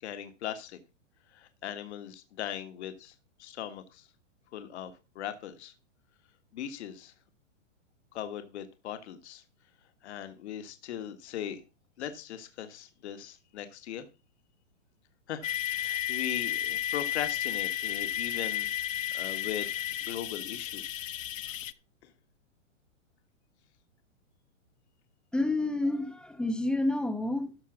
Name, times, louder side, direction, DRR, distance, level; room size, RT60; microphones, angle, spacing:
voice 1, 0.0-0.8 1.3-3.1 3.4-4.1 4.5-5.7 6.5-7.1 8.1-9.4 10.0-11.6 12.0-14.1 15.3-18.7 19.1-19.7 20.0-21.1 22.0-22.1, left 10 dB, 60° left, 1.7 m, -39 dB
sound 1, 15.4-21.7, left 11 dB, 85° left, 0.8 m, -33 dB
voice 2, 25.3-27.6, left 2 dB, ahead, 0.8 m, -29 dB
13.5 x 5.0 x 6.0 m
hypercardioid pair, 140°, 38 cm